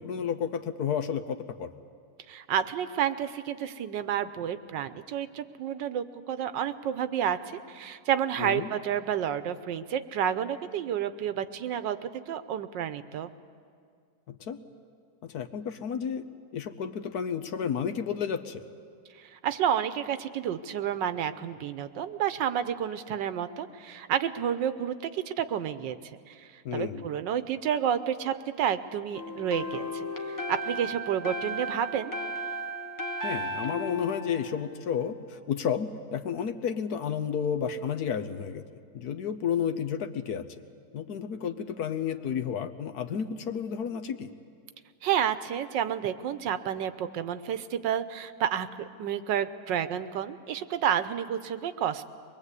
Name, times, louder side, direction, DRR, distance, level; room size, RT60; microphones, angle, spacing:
voice 1, 0.0-1.7 8.4-8.7 14.3-14.6 15.2-16.3 16.5-18.6 26.6-27.0 33.2-38.6 38.9-40.6 40.9-44.3, left 7 dB, 65° left, 8 dB, 1.4 m, -31 dB
voice 2, 2.3-13.3 19.1-32.1 45.0-52.0, right 9 dB, 90° right, 12 dB, 1.5 m, -30 dB
sound 1, 29.1-35.1, equal, 15° left, 0.9 m, -35 dB
23.0 x 21.0 x 8.3 m, 2.2 s
omnidirectional pair, 1.9 m